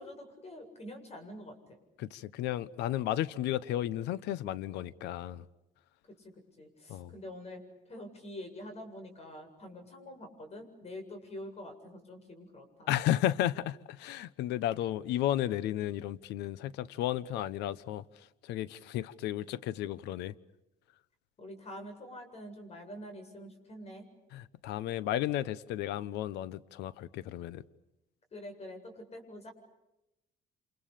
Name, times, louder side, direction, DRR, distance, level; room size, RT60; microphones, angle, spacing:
voice 1, 0.0-1.8 6.1-7.6 7.9-12.9 21.4-24.1 28.3-29.5, left 1 dB, 40° left, 7.8 m, -46 dB
voice 2, 2.0-5.5 6.9-7.1 12.9-20.3 24.3-27.6, left 13 dB, 85° left, 1.1 m, -33 dB
29.5 x 27.5 x 6.9 m
cardioid pair, 110°, 17 cm